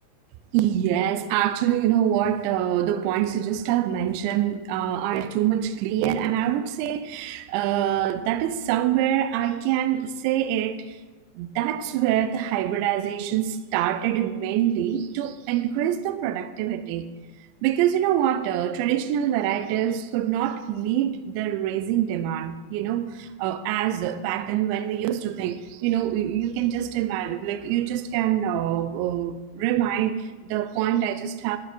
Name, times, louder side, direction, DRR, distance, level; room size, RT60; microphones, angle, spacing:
voice 1, 0.5-11.0 11.4-17.1 17.6-31.6, right 11 dB, 85° right, 2.8 m, -25 dB
14.0 x 6.5 x 4.2 m
omnidirectional pair, 5.4 m